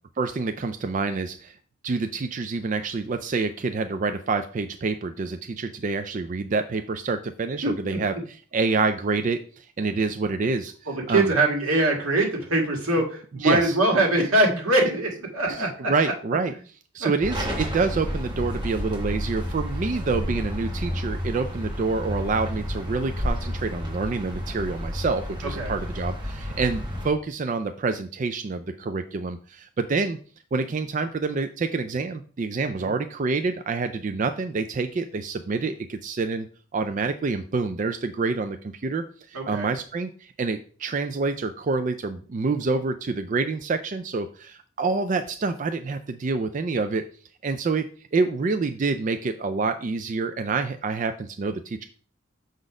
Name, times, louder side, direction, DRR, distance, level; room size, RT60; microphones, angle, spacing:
voice 1, 0.2-1.6 1.8-10.7 11.1-11.3 13.4-13.8 15.5-16.5 16.9-30.2 30.5-36.5 36.7-47.0 47.4-47.9 48.1-51.8, right 4 dB, 35° right, 8 dB, 0.3 m, -27 dB
voice 2, 7.6-8.0 10.9-15.9 17.0-17.1 25.6-25.7 32.8-32.9 39.3-39.7, right 2 dB, 90° right, 1 dB, 1.8 m, -23 dB
sound 1, 17.2-27.1, equal, 20° right, 1.2 m, -31 dB
6.5 x 4.0 x 4.9 m, 0.43 s
head